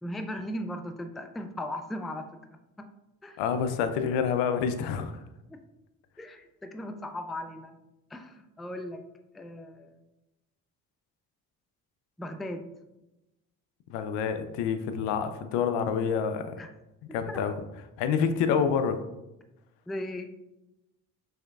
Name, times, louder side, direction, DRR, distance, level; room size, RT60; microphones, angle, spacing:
voice 1, 0.0-2.3 2.8-2.9 3.2-3.4 5.5-5.6 6.2-7.7 8.1-9.0 9.3-10.0 12.2-12.7 16.6-16.7 17.1-17.4 19.9-20.3, left 1 dB, ahead, 6 dB, 0.3 m, -37 dB
voice 2, 3.4-5.2 13.9-16.6 17.1-17.5 18.0-19.0, left 7 dB, 75° left, 9 dB, 0.6 m, -27 dB
6.2 x 3.3 x 2.3 m, 0.95 s
hypercardioid pair, 50°, 42 cm